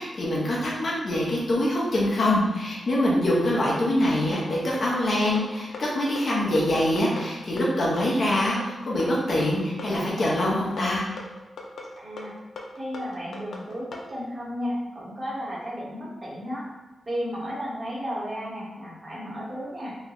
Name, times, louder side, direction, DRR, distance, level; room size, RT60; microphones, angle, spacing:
voice 1, 0.0-11.0, left 1 dB, 50° left, -5 dB, 0.9 m, -24 dB
sound 1, 4.3-14.1, left 3 dB, 75° left, 0.5 m, -39 dB
voice 2, 12.0-12.3 12.7-16.7 17.1-20.0, equal, 30° right, -6 dB, 1.0 m, -33 dB
3.2 x 2.1 x 3.8 m, 1.1 s
wide cardioid pair, 130°, 0 cm